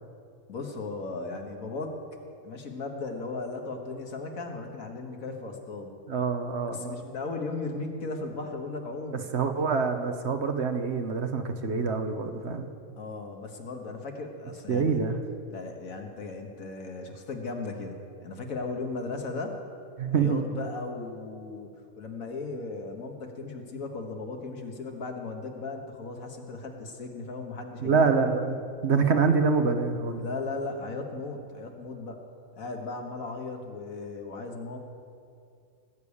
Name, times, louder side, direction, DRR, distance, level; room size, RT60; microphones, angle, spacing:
voice 1, 0.5-2.0 2.4-5.9 6.7-9.2 13.0-15.0 15.5-19.6 20.1-28.4 30.2-32.2 32.6-34.8, left 3 dB, 75° left, 3 dB, 1.9 m, -36 dB
voice 2, 6.1-7.0 9.3-12.7 14.7-15.2 20.0-20.4 27.8-30.2, right 5 dB, 55° right, 6 dB, 1.2 m, -26 dB
18.5 x 6.9 x 8.5 m, 2.4 s
omnidirectional pair, 1.5 m